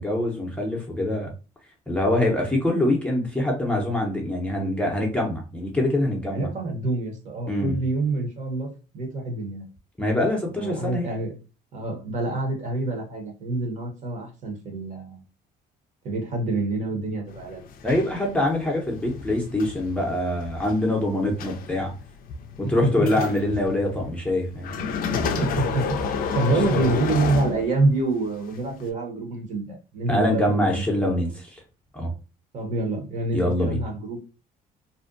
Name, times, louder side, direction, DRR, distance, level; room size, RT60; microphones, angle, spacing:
voice 1, 0.0-1.3 1.9-6.5 7.5-7.8 10.0-11.1 17.8-21.9 22.6-24.8 26.5-26.8 30.1-31.6 31.9-32.1 33.3-33.8, left 1 dB, 5° left, -1 dB, 0.6 m, -24 dB
voice 2, 6.3-9.7 10.6-11.3 11.7-15.2 16.0-17.6 22.8-23.1 25.1-26.0 26.3-31.1 32.5-34.2, right 2 dB, 45° right, 2 dB, 0.9 m, -27 dB
sound 1, 17.3-28.1 28.8-28.9, left 5 dB, 55° left, 0.4 m, -31 dB
2.5 x 2.2 x 2.5 m, 0.33 s
cardioid pair, 110°, 17 cm